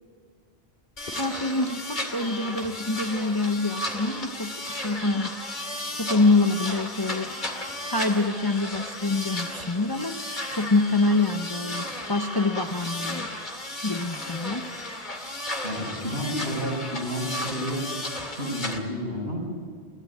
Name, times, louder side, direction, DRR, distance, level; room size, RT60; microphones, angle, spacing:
sound 1, 1.0-18.8, left 1 dB, 45° left, 2.5 m, -34 dB
voice 1, 1.1-5.3 5.9-7.3 7.9-13.3 13.8-14.6, left 2 dB, 25° left, 6 dB, 0.9 m, -26 dB
voice 2, 15.6-17.8 18.4-19.5, equal, 75° right, -2 dB, 7.0 m, -30 dB
22.5 x 16.5 x 8.5 m, 2.1 s
omnidirectional pair, 1.1 m